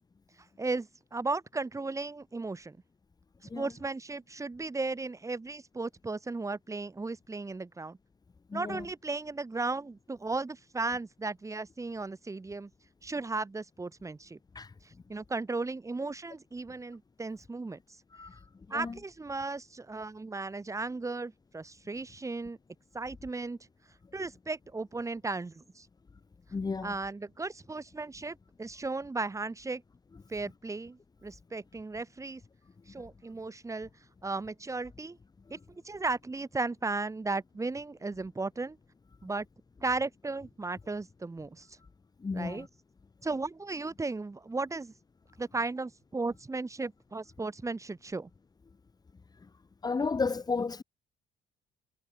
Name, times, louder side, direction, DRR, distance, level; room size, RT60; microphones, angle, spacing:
voice 1, 0.6-2.8 3.4-8.0 8.5-12.7 13.0-14.4 14.8-17.8 18.7-22.6 22.9-23.6 24.1-25.9 26.8-29.8 30.3-32.4 32.9-33.9 34.2-35.2 35.5-35.6 35.8-38.8 39.2-39.5 39.8-41.8 42.3-42.7 43.2-44.9 45.4-48.3, right 3 dB, 20° right, 5.3 m, -35 dB
voice 2, 8.5-8.9 14.5-14.7 18.1-19.0 26.5-27.0 42.2-42.7 49.8-50.8, left 4 dB, 25° left, 1.9 m, -33 dB
cardioid pair, 110°, 17 cm